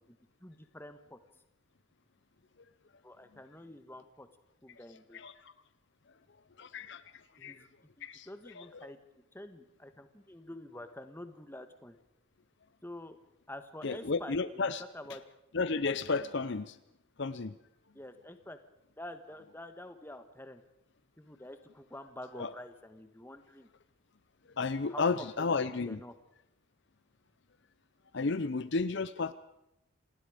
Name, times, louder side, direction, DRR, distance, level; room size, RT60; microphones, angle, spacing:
voice 1, 0.1-1.2 3.0-4.3 4.6-5.2 7.4-7.7 8.0-9.0 9.3-12.0 12.8-13.2 13.5-15.2 17.9-18.6 19.0-20.6 21.2-23.7 24.9-26.1, left 1 dB, 10° left, 8 dB, 1.4 m, -48 dB
voice 2, 6.6-7.0 7.4-7.6 8.0-8.3 8.6-8.7 13.8-14.8 15.5-16.8 17.2-17.6 22.4-22.5 24.6-26.0 28.1-29.3, left 4 dB, 55° left, 14 dB, 0.7 m, -32 dB
27.5 x 19.0 x 5.1 m, 0.86 s
head